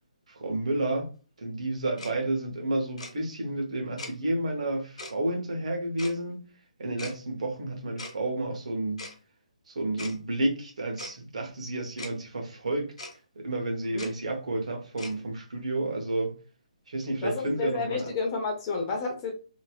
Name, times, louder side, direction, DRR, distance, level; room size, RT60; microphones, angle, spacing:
voice 1, 0.3-1.1 1.4-6.4 6.8-9.0 9.7-13.1 13.3-16.3 16.9-18.1, right 2 dB, 60° right, 1.1 m, -31 dB
Tick-tock, 2.0-2.1 3.0-3.1 4.0-4.1 5.0-5.1 6.0-6.1 7.0-7.1 8.0-8.1 9.0-9.1 10.0-10.2 11.0-11.1 12.0-12.1 13.0-13.2 14.0-14.1 15.0-15.1, left 2 dB, 55° left, 1.3 m, -39 dB
voice 2, 17.2-19.3, left 4 dB, 25° left, 0.8 m, -30 dB
3.0 x 2.9 x 2.3 m
figure-of-eight pair, 140°, 4 cm